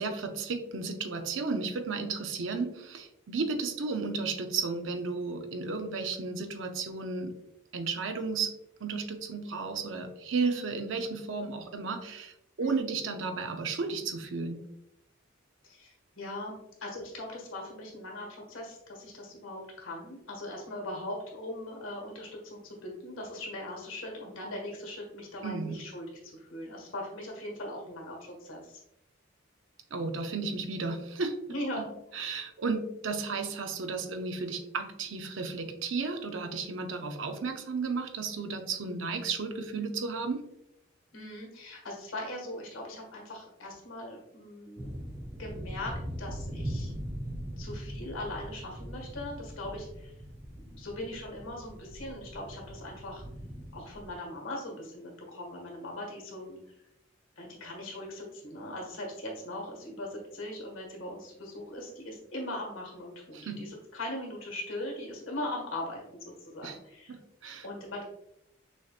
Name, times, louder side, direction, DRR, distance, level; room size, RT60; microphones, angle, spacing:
voice 1, 0.0-7.3 7.7-8.5 8.8-14.6 25.4-25.8 29.9-31.4 31.8-31.9 32.1-40.4 63.3-63.7 66.6-66.8 67.1-67.7, right 4 dB, 65° right, 6 dB, 0.6 m, -33 dB
voice 2, 12.6-12.9 15.6-28.8 31.5-31.9 41.1-44.9 45.4-46.9 47.6-50.1 50.5-53.2 53.7-56.6 57.4-67.1 67.6-68.0, left 1 dB, 80° left, 0 dB, 1.6 m, -40 dB
sound 1, 44.8-54.2, equal, 10° right, 0.5 m, -41 dB
6.3 x 2.9 x 2.4 m, 0.83 s
head